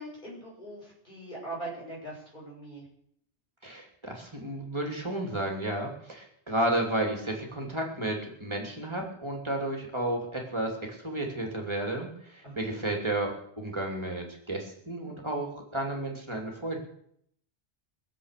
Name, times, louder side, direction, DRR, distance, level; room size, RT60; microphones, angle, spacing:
voice 1, 0.0-2.8 12.4-12.9, right 1 dB, 45° left, -5 dB, 6.8 m, -41 dB
voice 2, 3.6-16.8, right 1 dB, 25° right, 1 dB, 2.9 m, -32 dB
22.0 x 7.7 x 6.7 m, 0.69 s
omnidirectional pair, 1.2 m